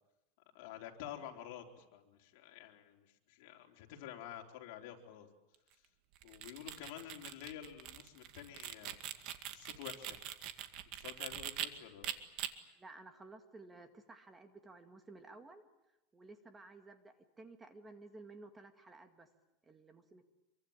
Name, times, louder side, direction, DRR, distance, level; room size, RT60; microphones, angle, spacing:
voice 1, 0.5-5.3 6.2-9.0 9.5-10.2 10.9-12.1, left 11 dB, 65° left, 2 dB, 4.1 m, -49 dB
sound 1, 6.2-11.7 12.0-12.5, right 12 dB, 50° right, 2.1 m, -43 dB
voice 2, 12.8-15.6 16.1-19.3 19.6-20.3, right 3 dB, 15° right, 7 dB, 2.1 m, -55 dB
26.5 x 24.0 x 8.9 m, 0.94 s
supercardioid pair, 145°, 0 cm